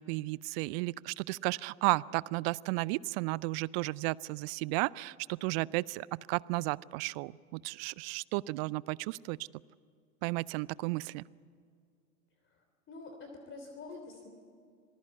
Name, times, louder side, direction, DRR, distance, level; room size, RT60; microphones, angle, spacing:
voice 1, 0.0-9.4 10.2-11.2, right 22 dB, 45° right, 23 dB, 0.6 m, -33 dB
voice 2, 12.5-14.3, left 3 dB, 30° left, 4 dB, 3.3 m, -47 dB
26.0 x 19.5 x 8.3 m, 2.2 s
hypercardioid pair, 85°, 42 cm